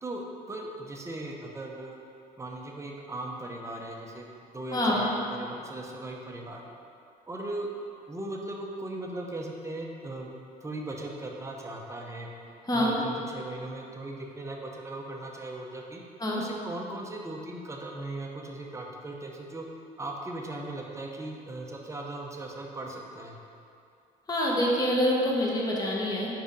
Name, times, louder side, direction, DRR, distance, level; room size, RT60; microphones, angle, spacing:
voice 1, 0.0-2.0 2.4-4.3 4.5-6.7 7.3-7.7 8.1-10.3 10.6-12.3 12.7-16.0 16.3-19.6 20.0-23.4, right 2 dB, 15° right, 0 dB, 0.8 m, -38 dB
voice 2, 4.7-5.0 12.6-13.0 16.2-16.4 24.3-26.3, equal, 20° left, -4 dB, 1.3 m, -26 dB
5.1 x 4.9 x 5.2 m, 2.5 s
cardioid pair, 110°, 17 cm